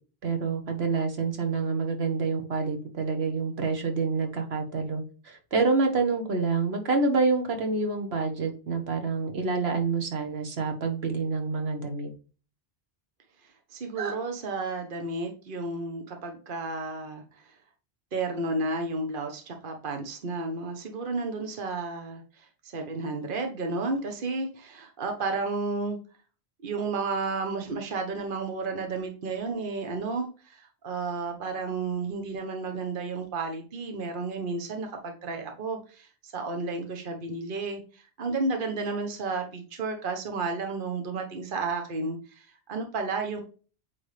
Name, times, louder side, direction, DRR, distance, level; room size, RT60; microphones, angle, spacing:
voice 1, 0.2-12.1 14.0-14.2, right 4 dB, 75° right, 4 dB, 1.5 m, -27 dB
voice 2, 13.7-17.5 18.1-26.0 26.6-43.4, right 3 dB, 55° right, 4 dB, 1.1 m, -32 dB
8.6 x 3.5 x 3.3 m, 0.37 s
omnidirectional pair, 1.1 m